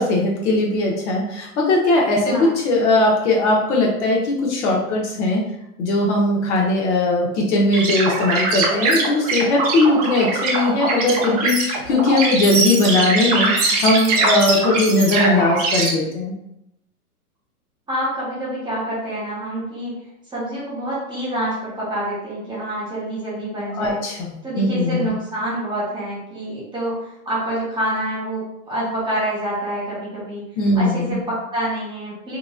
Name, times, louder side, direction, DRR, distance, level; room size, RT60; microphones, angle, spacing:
voice 1, 0.0-5.4 5.8-16.3 23.7-25.1 30.6-31.2, left 2 dB, 50° left, -2 dB, 0.9 m, -19 dB
sound 1, 7.7-15.9, right 3 dB, 30° right, 0.4 m, -22 dB
voice 2, 17.9-20.0 20.3-24.0 24.4-30.4 30.7-32.4, right 1 dB, 10° right, -8 dB, 0.9 m, -27 dB
2.9 x 2.5 x 2.4 m, 0.80 s
hypercardioid pair, 135°, 45 cm